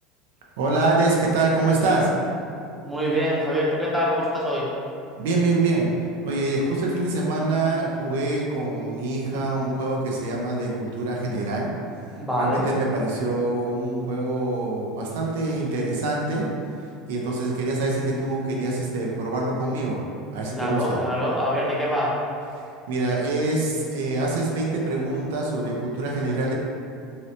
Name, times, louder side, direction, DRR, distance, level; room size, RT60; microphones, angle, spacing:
voice 1, 0.6-2.1 5.2-5.9 6.2-11.7 12.1-16.4 17.1-20.0 20.3-21.0 22.6-26.5, right 2 dB, 90° right, -2 dB, 0.4 m, -25 dB
voice 2, 2.8-4.7 12.1-12.7 20.6-22.1, equal, 5° right, -6 dB, 0.5 m, -24 dB
2.7 x 2.0 x 2.7 m, 2.4 s
supercardioid pair, 135°, 0 cm